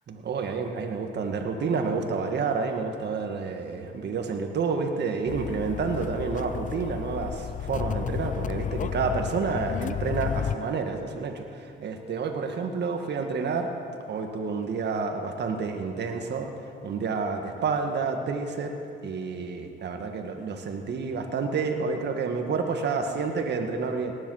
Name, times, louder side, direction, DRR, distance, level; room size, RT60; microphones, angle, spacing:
voice 1, 0.1-13.7 14.1-16.5 16.8-18.7 19.0-24.1, right 4 dB, 60° right, 4 dB, 1.7 m, -29 dB
sound 1, 5.3-10.6, left 8 dB, 40° left, 0.4 m, -32 dB
18.5 x 10.5 x 6.4 m, 2.5 s
cardioid pair, 90°, 20 cm